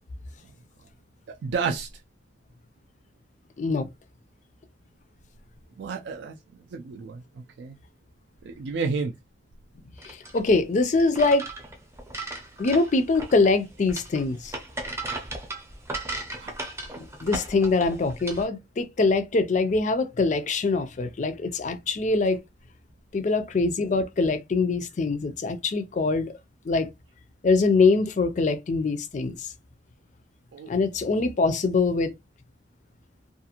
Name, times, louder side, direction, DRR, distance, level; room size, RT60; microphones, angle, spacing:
voice 1, 1.3-1.9 5.8-6.4 6.7-7.2 7.6-7.8 8.4-9.1 16.4-16.5 30.5-30.7, right 5 dB, 65° right, 0.3 m, -30 dB
voice 2, 3.6-3.9 10.0-11.4 12.6-14.5 17.0-22.4 23.1-26.3 26.7-26.9 27.4-29.5 30.7-32.1, left 3 dB, 40° left, 0.4 m, -23 dB
sound 1, 10.0-18.5, right 2 dB, 15° right, 0.5 m, -36 dB
2.4 x 2.4 x 2.8 m
head